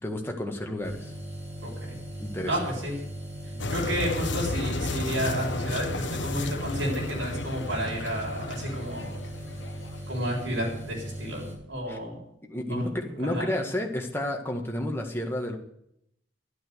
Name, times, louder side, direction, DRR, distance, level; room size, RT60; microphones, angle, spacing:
voice 1, 0.0-1.1 2.2-2.7 11.9-12.0 12.5-15.6, left 1 dB, 10° left, 1 dB, 1.8 m, -31 dB
sound 1, 0.8-11.5, right 1 dB, 35° right, 7.0 m, -39 dB
voice 2, 1.6-2.0 2.5-3.0 3.5-9.1 10.1-12.2 12.7-12.8 13.3-13.4, equal, 85° right, -1 dB, 7.4 m, -31 dB
sound 2, 3.6-10.2, left 2 dB, 70° left, 1.1 m, -33 dB
12.0 x 11.5 x 8.1 m, 0.75 s
head